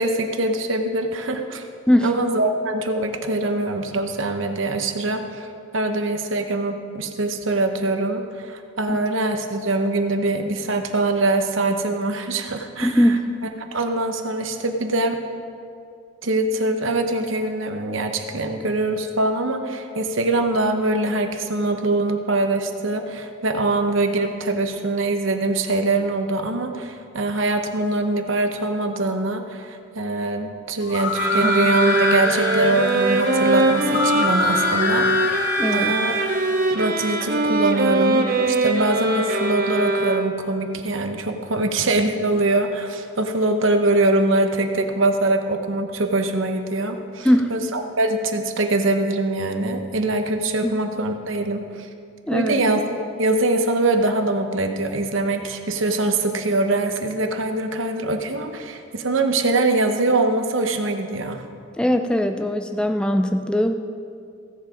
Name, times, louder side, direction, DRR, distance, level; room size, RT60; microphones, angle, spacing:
voice 1, 0.0-1.6 2.0-5.5 5.7-13.1 13.7-15.2 16.2-35.4 35.7-36.1 36.7-51.9 52.3-52.8 53.2-61.4, right 2 dB, 70° right, 6 dB, 0.9 m, -23 dB
voice 2, 12.8-13.2 31.4-31.6 35.6-35.9 41.6-41.7 47.2-47.6 50.6-50.7 52.3-52.6 61.8-63.7, equal, 5° left, 7 dB, 0.4 m, -20 dB
sound 1, 30.8-36.6, left 4 dB, 55° left, 0.9 m, -25 dB
sound 2, 31.1-40.6, right 2 dB, 45° right, 0.8 m, -22 dB
16.0 x 7.6 x 5.1 m, 2.4 s
head